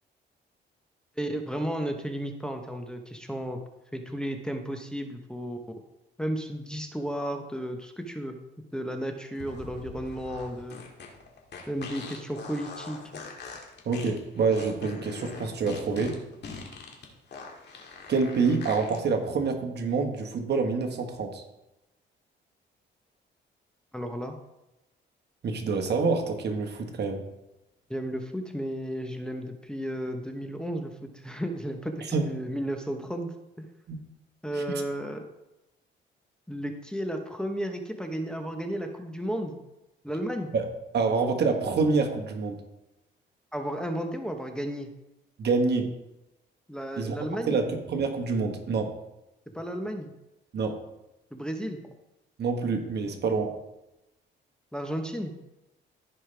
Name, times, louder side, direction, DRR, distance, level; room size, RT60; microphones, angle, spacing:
voice 1, 1.2-3.6 3.9-5.6 6.2-8.4 8.7-10.8 11.7-13.2 23.9-24.3 27.9-33.7 34.4-35.3 36.5-39.6 40.0-40.5 43.5-44.9 46.7-47.6 49.5-50.1 51.3-51.8 54.7-55.3, equal, 5° left, 3 dB, 1.1 m, -33 dB
sound 1, 9.3-19.0, left 4 dB, 60° left, 2.0 m, -42 dB
voice 2, 13.8-16.2 18.1-21.4 25.4-27.2 32.1-32.3 33.9-34.0 40.5-40.6 40.9-42.6 45.4-45.9 47.0-47.2 47.5-48.9 50.5-50.8 52.4-53.5, right 4 dB, 55° right, 3 dB, 1.5 m, -27 dB
15.5 x 5.4 x 3.4 m, 0.95 s
cardioid pair, 90°, 20 cm